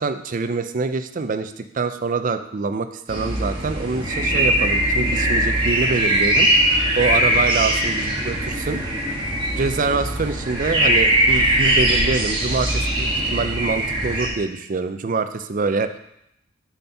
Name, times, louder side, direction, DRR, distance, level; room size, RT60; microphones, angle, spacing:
voice 1, 0.0-6.5 7.0-8.8 9.6-15.9, right 4 dB, 40° right, 10 dB, 0.4 m, -25 dB
sound 1, 3.1-14.3, right 1 dB, 25° right, 1.4 m, -20 dB
7.1 x 4.3 x 5.6 m, 0.78 s
head